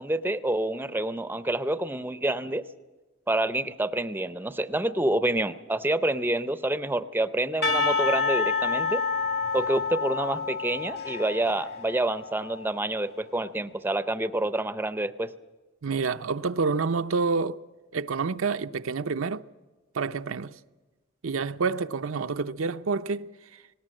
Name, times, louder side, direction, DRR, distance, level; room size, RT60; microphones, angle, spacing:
voice 1, 0.0-2.6 3.3-9.0 9.5-15.3, right 1 dB, 10° right, 0.6 m, -28 dB
Percussion / Church bell, 7.6-12.6, left 4 dB, 50° left, 1.5 m, -28 dB
voice 2, 15.8-17.6 17.9-19.4 19.9-20.5 21.2-23.6, right 4 dB, 70° right, 0.6 m, -28 dB
19.0 x 18.0 x 7.6 m
head